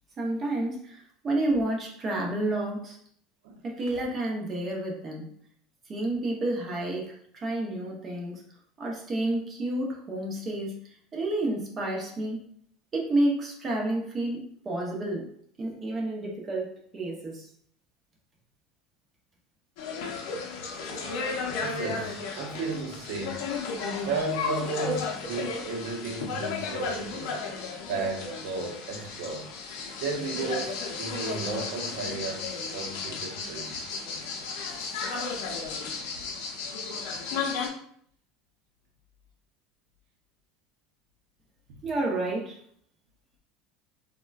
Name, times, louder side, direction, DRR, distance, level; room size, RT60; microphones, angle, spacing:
voice 1, 0.2-3.0 3.6-5.3 5.9-8.4 8.8-12.5 12.9-15.3 15.6-17.5 41.8-42.6, right 1 dB, 25° right, -1 dB, 0.7 m, -30 dB
sound 1, 19.8-37.7, left 4 dB, 70° left, 0.6 m, -34 dB
voice 2, 21.6-23.5 24.0-27.4 27.9-29.5 30.0-33.8, right 3 dB, 70° right, 2 dB, 0.7 m, -34 dB
3.6 x 2.1 x 2.3 m, 0.63 s
cardioid pair, 150°, 0 cm